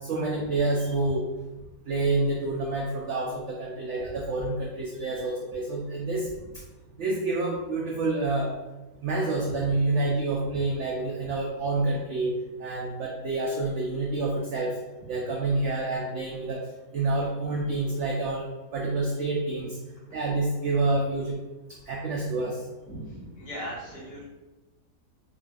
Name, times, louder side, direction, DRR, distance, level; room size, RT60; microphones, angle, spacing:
voice 1, 0.1-1.2 1.9-6.3 7.0-8.5 9.0-12.3 12.6-14.7 15.1-16.6 16.9-18.5 18.7-19.8 20.1-21.4 21.9-22.6, right 2 dB, 85° right, -2 dB, 0.6 m, -28 dB
voice 2, 22.8-24.2, equal, 80° left, -8 dB, 1.9 m, -39 dB
4.8 x 2.4 x 2.3 m, 1.1 s
omnidirectional pair, 1.8 m